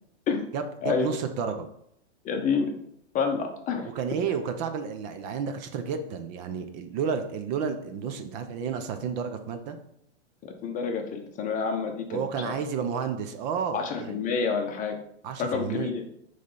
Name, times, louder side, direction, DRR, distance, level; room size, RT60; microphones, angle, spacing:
voice 1, 0.5-1.7 3.9-9.8 12.1-14.2 15.2-15.9, right 6 dB, 40° right, 8 dB, 0.7 m, -31 dB
voice 2, 2.2-2.7 3.1-3.9 10.4-12.2 12.4-12.5 13.7-15.0 15.4-16.0, left 5 dB, 20° left, 4 dB, 0.8 m, -28 dB
6.3 x 3.3 x 5.4 m, 0.73 s
hypercardioid pair, 130°, 35 cm